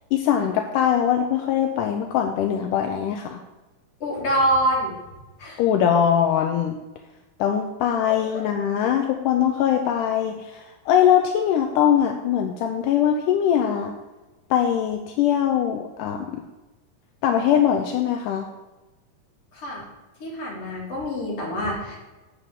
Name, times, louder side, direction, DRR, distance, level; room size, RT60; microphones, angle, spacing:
voice 1, 0.1-3.4 5.6-6.8 7.4-13.9 14.5-16.4 17.2-18.5, left 9 dB, 85° left, 3 dB, 2.2 m, -22 dB
voice 2, 4.0-4.9 5.4-5.6 8.0-8.4 19.5-19.9 20.2-22.0, equal, 50° left, -4 dB, 3.4 m, -26 dB
6.7 x 5.7 x 7.4 m, 1.1 s
omnidirectional pair, 3.7 m